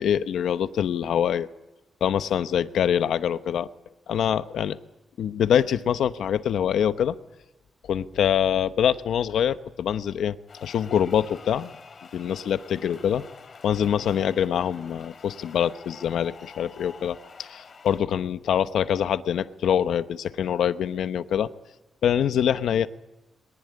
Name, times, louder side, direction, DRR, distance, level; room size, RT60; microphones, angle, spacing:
voice 1, 0.0-1.5 2.0-3.7 4.1-4.8 5.2-7.2 7.9-10.4 10.6-11.7 12.1-13.2 13.6-21.5 22.0-22.9, left 9 dB, 85° left, 11 dB, 1.0 m, -24 dB
sound 1, 10.5-18.0, left 5 dB, 50° left, 2.9 m, -47 dB
22.5 x 19.5 x 9.6 m, 1.0 s
cardioid pair, 95°, 0 cm